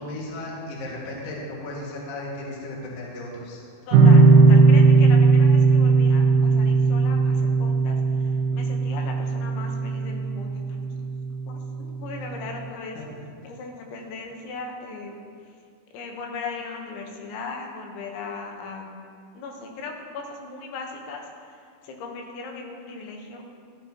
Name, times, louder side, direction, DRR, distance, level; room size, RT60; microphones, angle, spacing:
voice 1, 0.0-3.6 12.9-13.0, left 1 dB, 50° left, -4 dB, 2.0 m, -35 dB
voice 2, 3.9-11.1 11.5-13.0 13.5-15.2 15.5-15.6 15.9-18.9 19.3-23.4, left 4 dB, 80° left, 1 dB, 3.4 m, -38 dB
sound 1, 3.9-11.1, right 4 dB, 85° right, 3.2 m, -17 dB
15.0 x 13.0 x 2.9 m, 2.3 s
omnidirectional pair, 5.4 m